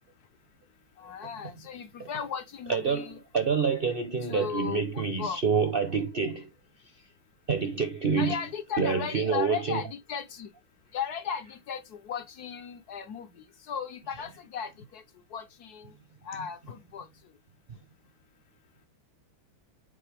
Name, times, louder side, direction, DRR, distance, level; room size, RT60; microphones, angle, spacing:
voice 1, 1.0-3.2 4.2-5.4 8.2-10.5 10.9-15.0 15.3-15.9 16.2-17.1, left 7 dB, 60° left, 1.2 m, -36 dB
voice 2, 2.7-6.5 7.5-8.4 8.8-9.8, right 5 dB, 45° right, 0.7 m, -27 dB
7.8 x 5.5 x 3.4 m
omnidirectional pair, 2.1 m